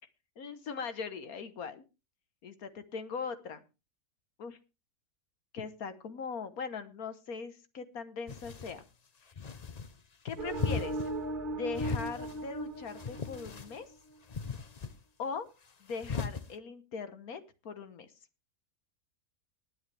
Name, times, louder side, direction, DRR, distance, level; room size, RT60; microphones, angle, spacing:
voice 1, 0.4-1.8 2.4-3.6 4.4-4.6 5.5-8.8 10.3-11.1 11.5-13.9 15.2-15.5 15.8-18.1, left 5 dB, 70° left, 11 dB, 1.6 m, -40 dB
sound 1, 8.3-8.8 9.3-9.9 10.5-11.1 11.7-12.4 12.9-13.8 14.3-14.9 15.9-16.4, left 5 dB, 35° left, 0.7 m, -37 dB
sound 2, 10.4-14.0, right 2 dB, 35° right, 2.0 m, -38 dB
20.0 x 9.1 x 3.3 m, 0.29 s
omnidirectional pair, 1.6 m